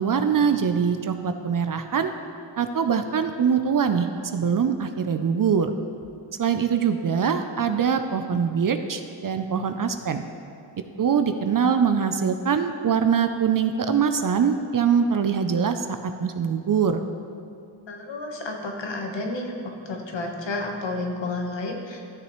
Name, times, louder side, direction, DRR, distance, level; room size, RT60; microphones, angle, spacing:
voice 1, 0.0-2.1 2.6-5.7 6.4-10.2 11.0-17.0, right 7 dB, 45° right, 8 dB, 0.6 m, -23 dB
voice 2, 17.9-22.0, left 2 dB, 60° left, 2 dB, 1.4 m, -31 dB
12.5 x 6.4 x 3.1 m, 2.5 s
cardioid pair, 60°, 49 cm